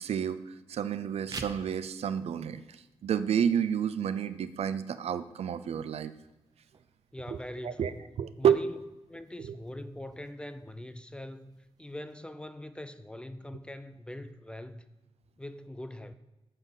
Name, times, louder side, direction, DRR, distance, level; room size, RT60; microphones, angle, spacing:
voice 1, 0.0-6.1 7.3-7.9 8.2-8.6 9.4-9.6, right 8 dB, 70° right, 0.5 m, -30 dB
sound 1, 1.1-12.1, right 3 dB, 35° right, 0.7 m, -52 dB
voice 2, 7.1-8.0 8.4-8.8 9.1-14.8 15.4-16.1, left 1 dB, 10° left, 0.4 m, -42 dB
9.2 x 4.1 x 7.2 m
wide cardioid pair, 135°, 11 cm